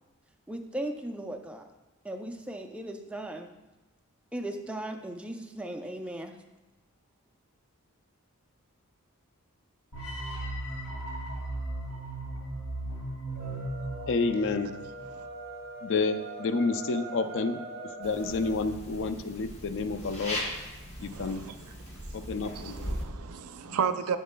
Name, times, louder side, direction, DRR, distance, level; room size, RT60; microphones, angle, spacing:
voice 1, 0.5-1.7 2.0-3.5 4.3-6.3, right 1 dB, 5° right, 5 dB, 0.4 m, -37 dB
sound 1, 9.9-15.0, right 1 dB, 80° left, 1.9 m, -36 dB
sound 2, 13.3-18.6, right 2 dB, 45° right, 1.1 m, -42 dB
voice 2, 14.1-14.7 15.8-17.6 18.0-20.4 21.0-21.4 22.1-23.0 23.7-23.8, left 4 dB, 60° left, 10 dB, 0.4 m, -29 dB
sound 3, 18.0-23.1, equal, 30° left, 1.2 m, -39 dB
voice 3, 21.1-21.5 22.5-24.2, right 7 dB, 80° right, 10 dB, 0.5 m, -33 dB
9.9 x 7.6 x 2.2 m, 1.1 s
head